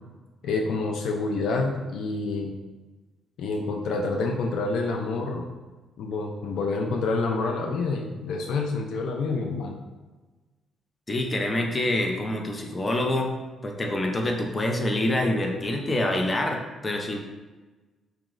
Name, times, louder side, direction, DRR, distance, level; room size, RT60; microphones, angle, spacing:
voice 1, 0.4-2.6 3.4-5.5 6.0-9.8, left 3 dB, 75° left, 2 dB, 0.4 m, -28 dB
voice 2, 11.1-13.4 13.6-17.2, left 1 dB, 25° left, 2 dB, 0.6 m, -26 dB
4.6 x 3.0 x 2.5 m, 1.3 s
cardioid pair, 90°, 0 cm